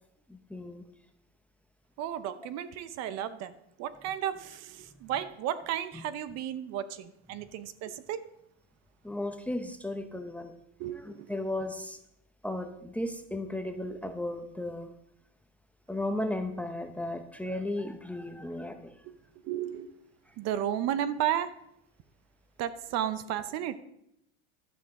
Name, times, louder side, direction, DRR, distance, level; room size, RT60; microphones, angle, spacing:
voice 1, 0.3-0.8 9.0-10.5 10.9-12.0 12.4-14.9 15.9-18.9, left 1 dB, 5° left, 7 dB, 0.7 m, -35 dB
voice 2, 2.0-3.5 3.8-8.2 10.8-11.3 19.4-19.9 20.4-21.5 22.6-23.8, right 10 dB, 50° right, 13 dB, 0.8 m, -33 dB
12.0 x 8.3 x 3.7 m, 0.79 s
supercardioid pair, 120°, 34 cm